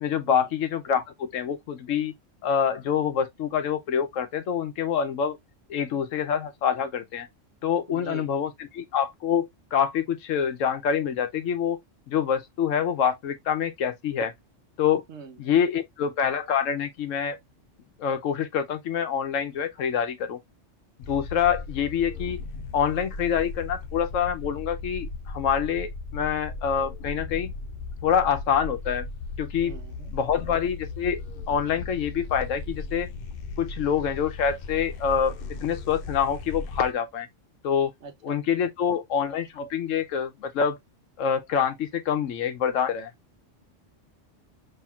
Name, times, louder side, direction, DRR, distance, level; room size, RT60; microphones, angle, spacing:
voice 1, 0.0-2.1 2.4-5.4 5.7-7.3 7.6-11.8 12.1-14.3 14.8-15.0 15.4-17.4 18.0-20.4 21.1-22.4 22.7-27.5 28.0-29.1 29.4-29.8 30.1-31.2 31.5-33.1 33.6-37.3 37.6-37.9 38.2-40.8 41.2-43.1, left 7 dB, 85° left, 1.1 m, -26 dB
voice 2, 7.9-8.3 15.1-15.5 29.6-30.1 38.0-38.4, right 5 dB, 65° right, 1.1 m, -43 dB
sound 1, 21.0-36.9, left 3 dB, 60° left, 0.7 m, -37 dB
5.8 x 3.1 x 2.4 m
omnidirectional pair, 1.3 m